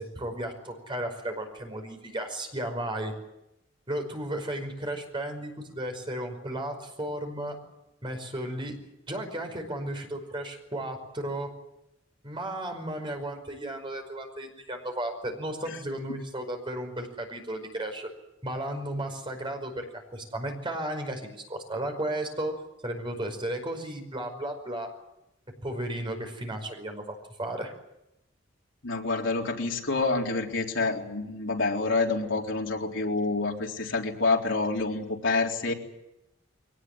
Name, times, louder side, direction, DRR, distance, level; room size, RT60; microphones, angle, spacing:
voice 1, 0.0-3.1 3.9-7.6 8.0-8.8 9.1-11.5 12.2-18.1 18.4-24.9 25.6-27.7, right 1 dB, 25° right, 4 dB, 5.3 m, -34 dB
voice 2, 28.8-35.7, left 3 dB, 70° left, 0 dB, 3.9 m, -27 dB
22.5 x 19.0 x 9.9 m, 0.89 s
head